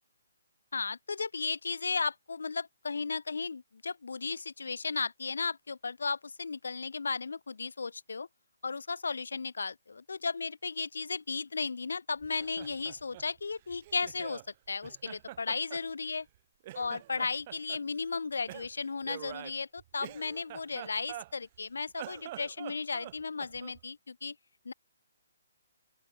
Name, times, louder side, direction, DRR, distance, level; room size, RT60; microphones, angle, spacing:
voice 1, 0.7-8.3 8.6-14.4 14.7-16.3 16.7-24.4 24.6-24.7, left 4 dB, 90° left, 0.8 m, -35 dB
Laughter, 12.2-14.5 14.8-16.4 16.6-17.8 18.5-21.6 21.9-23.8, right 15 dB, 25° right, 0.8 m, -46 dB
open air
hypercardioid pair, 170°, 0 cm